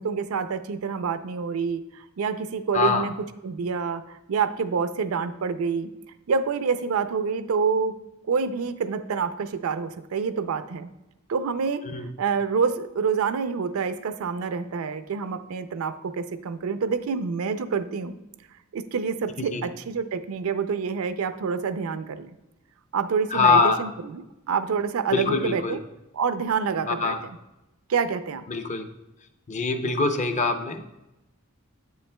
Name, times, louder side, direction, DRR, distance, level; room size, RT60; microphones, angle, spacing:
voice 1, 0.0-3.1 3.4-5.9 6.3-8.0 8.3-10.9 11.3-11.8 12.2-18.1 18.7-22.3 22.9-25.8 26.1-27.2 27.9-28.4, right 5 dB, 80° right, 12 dB, 0.4 m, -27 dB
voice 2, 2.7-3.0 11.9-12.1 19.4-19.6 23.3-23.8 25.1-25.8 26.9-27.2 28.5-28.9 29.5-30.8, left 4 dB, 35° left, 7 dB, 0.5 m, -23 dB
8.7 x 7.0 x 2.2 m, 0.95 s
head